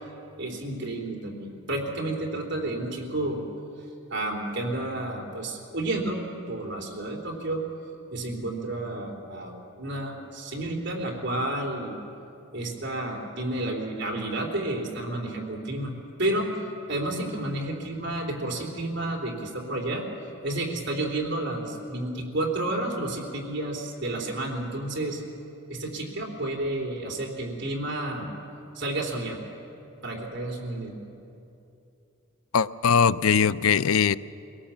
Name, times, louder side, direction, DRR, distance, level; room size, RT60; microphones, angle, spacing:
voice 1, 0.4-3.4 4.1-7.6 8.1-12.0 12.5-15.9 16.2-16.5 16.9-20.0 20.4-25.2 25.7-28.3 28.8-29.4 30.0-30.9, right 1 dB, 60° right, 0 dB, 3.5 m, -31 dB
voice 2, 32.5-34.2, left 6 dB, 90° left, 16 dB, 0.5 m, -21 dB
23.5 x 17.5 x 7.3 m, 2.8 s
head